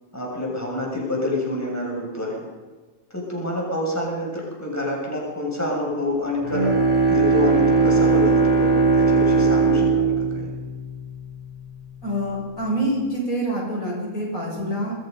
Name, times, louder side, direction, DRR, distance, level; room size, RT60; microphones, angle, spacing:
voice 1, 0.1-2.4 3.1-6.8 7.1-10.5, left 1 dB, 10° left, -2 dB, 7.1 m, -27 dB
Bowed string instrument, 6.4-11.5, right 4 dB, 25° right, 2.9 m, -19 dB
voice 2, 12.0-15.0, right 1 dB, 70° left, -2 dB, 7.5 m, -26 dB
27.0 x 23.0 x 5.5 m, 1.3 s
omnidirectional pair, 1.5 m